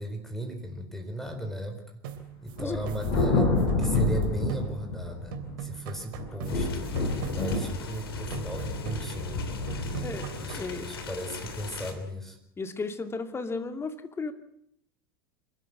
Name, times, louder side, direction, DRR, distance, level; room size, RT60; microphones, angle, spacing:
voice 1, 0.0-2.0 2.4-3.5 3.8-6.9 7.3-9.4 9.8-12.4, equal, 5° left, 5 dB, 4.4 m, -36 dB
sound 1, 2.0-5.1 5.3-8.0 8.3-9.4 9.7-10.8, right 9 dB, 65° right, 2.9 m, -40 dB
Thunder, 2.6-5.7 6.1-11.5, left 3 dB, 60° left, 7.0 m, -29 dB
sound 2, 6.4-11.9, left 4 dB, 75° left, 3.0 m, -40 dB
voice 2, 10.0-10.9 12.6-14.3, left 4 dB, 20° left, 8 dB, 2.3 m, -34 dB
27.0 x 12.5 x 7.8 m, 0.73 s
figure-of-eight pair, 80°, 12 cm